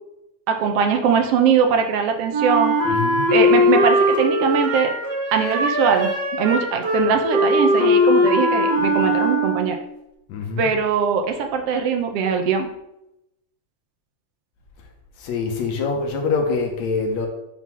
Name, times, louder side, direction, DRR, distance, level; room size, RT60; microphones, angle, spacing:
voice 1, 0.5-2.8 3.3-4.9 5.3-9.8 10.6-12.7, right 6 dB, 75° right, 5 dB, 1.4 m, -21 dB
Wind instrument woodwind instrument, 2.3-9.9, left 1 dB, 55° right, 1.2 m, -20 dB
voice 2, 2.9-3.2 10.3-10.7 15.2-17.3, left 4 dB, 70° left, 3 dB, 2.0 m, -24 dB
5.8 x 3.8 x 5.9 m, 0.86 s
omnidirectional pair, 3.4 m